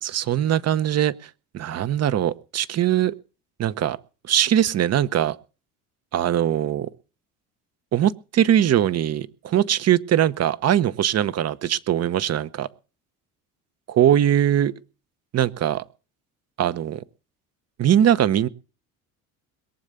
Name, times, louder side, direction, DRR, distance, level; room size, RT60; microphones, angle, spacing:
voice 1, 0.0-3.1 3.6-4.0 4.3-5.4 6.1-6.9 7.9-12.7 13.9-14.7 15.3-15.8 16.6-17.0 17.8-18.5, right 10 dB, 45° right, 16 dB, 1.0 m, -21 dB
22.0 x 7.4 x 6.8 m, 0.36 s
supercardioid pair, 90°, 34 cm